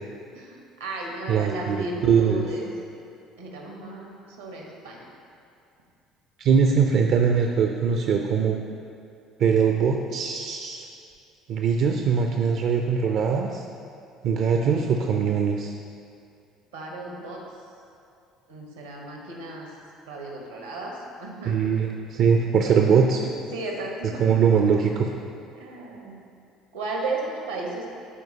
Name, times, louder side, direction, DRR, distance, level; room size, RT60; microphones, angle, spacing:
voice 1, 0.3-2.7 3.4-5.1 16.7-17.4 18.5-19.7 20.1-21.7 22.6-23.2 23.5-24.4 25.5-26.2 26.7-27.9, right 2 dB, 85° right, -1 dB, 1.2 m, -34 dB
voice 2, 1.3-2.4 6.4-8.6 9.4-10.8 11.5-13.6 14.2-15.8 21.5-23.3 24.2-25.1, right 6 dB, 55° right, 3 dB, 0.4 m, -22 dB
12.5 x 4.5 x 2.8 m, 2.5 s
hypercardioid pair, 60°, 0 cm